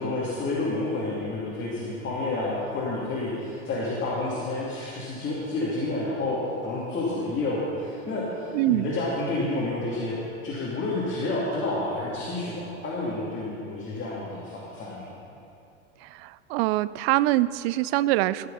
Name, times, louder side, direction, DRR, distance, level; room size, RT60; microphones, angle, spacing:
voice 1, 0.0-10.1 10.4-15.2, left 2 dB, 30° left, -7 dB, 2.6 m, -29 dB
voice 2, 8.5-8.9 16.1-18.5, right 16 dB, 50° right, 18 dB, 0.4 m, -24 dB
16.0 x 6.7 x 5.5 m, 2.7 s
hypercardioid pair, 90°, 39 cm